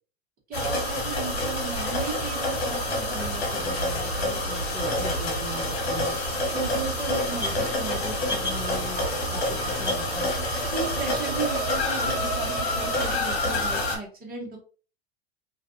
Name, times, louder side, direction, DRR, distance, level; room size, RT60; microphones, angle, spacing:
sound 1, 0.5-14.0, left 1 dB, 70° left, 1.1 m, -27 dB
voice 1, 0.5-6.1 6.5-10.3 10.7-14.6, right 4 dB, 30° right, -2 dB, 1.1 m, -36 dB
sound 2, 5.3-10.9, left 1 dB, 5° right, 0.5 m, -41 dB
2.5 x 2.4 x 2.5 m, 0.38 s
hypercardioid pair, 90°, 32 cm